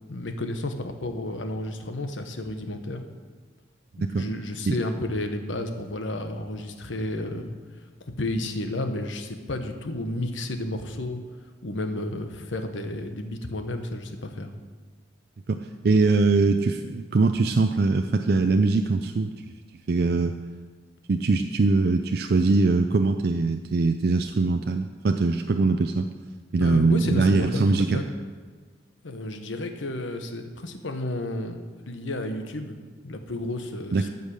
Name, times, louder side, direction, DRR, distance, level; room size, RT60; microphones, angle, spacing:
voice 1, 0.1-3.0 4.1-7.6 8.0-11.2 11.6-14.5 26.6-28.0 29.0-34.1, left 1 dB, 90° left, 6 dB, 1.1 m, -32 dB
voice 2, 15.8-19.3 19.9-20.4 21.1-26.1 26.5-28.0 33.9-34.1, right 3 dB, 55° right, 6 dB, 0.4 m, -22 dB
14.0 x 5.4 x 6.4 m, 1.5 s
head